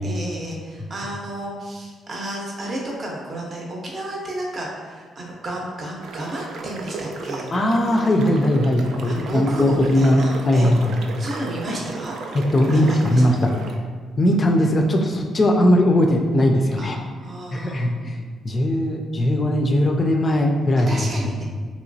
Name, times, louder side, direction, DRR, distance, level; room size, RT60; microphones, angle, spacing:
voice 1, 0.0-7.5 9.0-10.7 11.2-12.1 12.7-13.2 16.8-17.9 20.9-21.4, right 1 dB, 40° right, -2 dB, 0.6 m, -32 dB
sound 1, 6.0-13.8, right 4 dB, 75° right, 0.3 m, -35 dB
voice 2, 7.5-11.0 12.3-13.5 14.2-17.0 17.5-21.3, left 1 dB, 35° left, 2 dB, 0.3 m, -19 dB
3.0 x 2.9 x 2.6 m, 1.5 s
cardioid pair, 90°, 0 cm